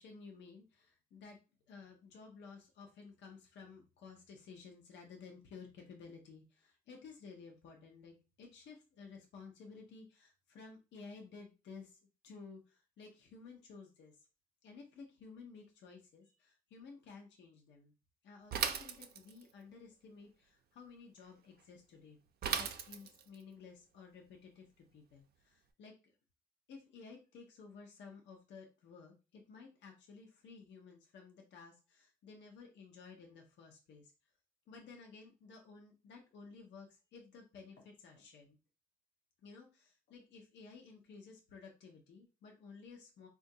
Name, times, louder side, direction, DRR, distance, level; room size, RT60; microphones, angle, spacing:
voice 1, 0.0-1.4 1.7-14.2 14.6-17.9 18.2-22.2 22.5-26.1 26.7-34.1 34.7-38.6 39.4-43.3, left 5 dB, 75° left, 2 dB, 0.7 m, -55 dB
Bicycle / Mechanisms, 18.5-19.5 22.4-23.3, right 7 dB, 60° right, 0.5 m, -37 dB
3.7 x 2.4 x 2.7 m, 0.31 s
supercardioid pair, 70°, 19 cm